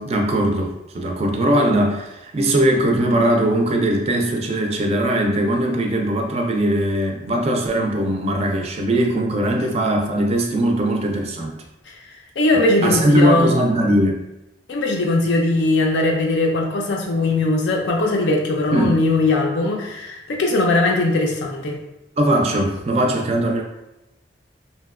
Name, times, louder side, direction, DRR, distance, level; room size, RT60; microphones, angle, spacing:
voice 1, 0.0-11.6 12.5-14.2 18.7-19.0 22.2-23.6, right 1 dB, 35° right, 2 dB, 0.3 m, -20 dB
voice 2, 12.4-13.6 14.7-21.8, left 2 dB, 80° left, 1 dB, 0.5 m, -20 dB
2.8 x 2.1 x 2.3 m, 0.92 s
head